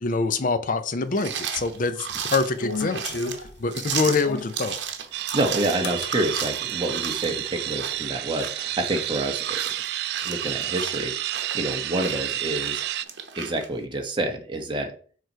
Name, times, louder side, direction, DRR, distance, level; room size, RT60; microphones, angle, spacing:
voice 1, 0.0-4.8, left 4 dB, 50° left, 11 dB, 0.6 m, -25 dB
sound 1, 1.1-13.7, right 7 dB, 85° right, 0.9 m, -34 dB
sound 2, 1.6-4.6 5.8-6.6, left 3 dB, 85° left, 0.8 m, -33 dB
sound 3, 5.1-13.0, right 13 dB, 65° right, 0.3 m, -30 dB
voice 2, 5.2-9.8 10.2-12.8 13.3-14.9, right 1 dB, 30° right, 3 dB, 1.2 m, -28 dB
6.6 x 3.1 x 4.6 m, 0.42 s
head